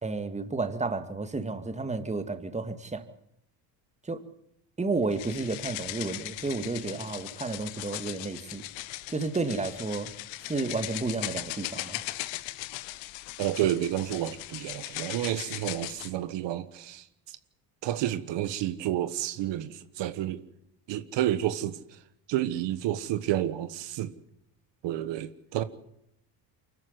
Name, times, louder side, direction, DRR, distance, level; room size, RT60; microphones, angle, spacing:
voice 1, 0.0-3.0 4.0-4.2 4.8-8.6 9.1-10.1 10.5-12.0, right 3 dB, 15° right, 2.2 m, -31 dB
sound 1, 5.1-16.1, left 18 dB, 80° left, 1.0 m, -39 dB
voice 2, 13.4-17.0 17.8-20.4 20.9-22.0 22.3-24.1 24.8-25.6, right 12 dB, 70° right, 1.5 m, -30 dB
24.0 x 14.0 x 9.9 m
supercardioid pair, 95°, 44 cm